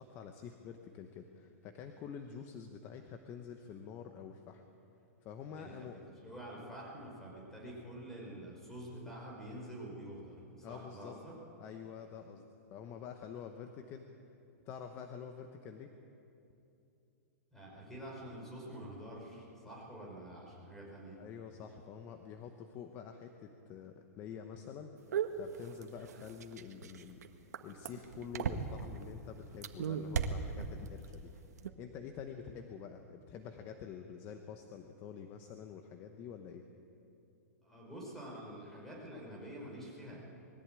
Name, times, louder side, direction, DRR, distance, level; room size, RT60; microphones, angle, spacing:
voice 1, 0.0-4.6 5.2-5.9 10.6-11.1 11.6-12.5 12.7-14.1 14.6-15.9 21.2-24.9 25.4-27.2 27.6-36.6, left 7 dB, 25° left, 6 dB, 1.0 m, -47 dB
voice 2, 5.5-11.3 17.5-21.2 37.6-40.2, right 1 dB, 5° left, -3 dB, 5.0 m, -47 dB
sound 1, 25.1-29.0 29.5-31.1 31.4-31.7, right 7 dB, 85° right, 1.5 m, -36 dB
21.0 x 14.5 x 9.0 m, 2.8 s
hypercardioid pair, 160°, 9 cm